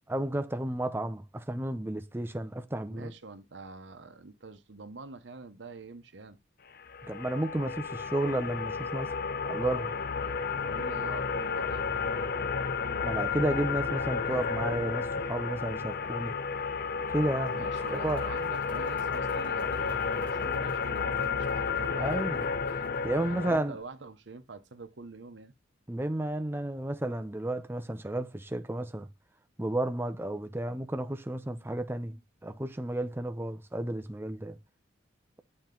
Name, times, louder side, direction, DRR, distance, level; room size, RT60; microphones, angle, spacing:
voice 1, 0.1-3.1 7.0-9.1 9.4-9.9 13.0-16.3 17.1-17.6 17.9-18.2 22.0-22.4 23.0-23.8 25.9-29.1 29.6-34.6, right 1 dB, 10° right, 0.6 m, -32 dB
voice 2, 2.8-6.4 10.5-12.0 17.5-22.6 23.1-25.5, right 3 dB, 65° right, 0.9 m, -46 dB
sound 1, 6.8-23.6, left 5 dB, 50° left, 0.6 m, -32 dB
sound 2, 17.2-23.8, right 1 dB, 10° left, 4.3 m, -56 dB
7.5 x 4.4 x 3.7 m
head